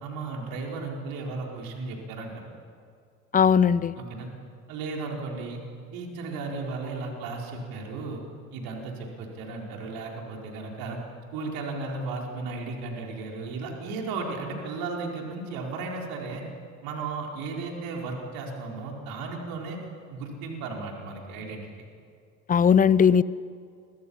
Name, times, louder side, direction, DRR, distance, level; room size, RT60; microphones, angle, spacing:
voice 1, 0.0-2.5 4.0-4.3 4.7-5.6 5.9-8.2 8.5-11.0 11.3-16.4 16.8-19.8 20.1-21.7, right 3 dB, 55° right, 0 dB, 4.8 m, -35 dB
voice 2, 3.3-4.0 22.5-23.2, left 7 dB, 20° left, 20 dB, 0.7 m, -18 dB
30.0 x 23.5 x 5.7 m, 2.3 s
figure-of-eight pair, 65°, 41 cm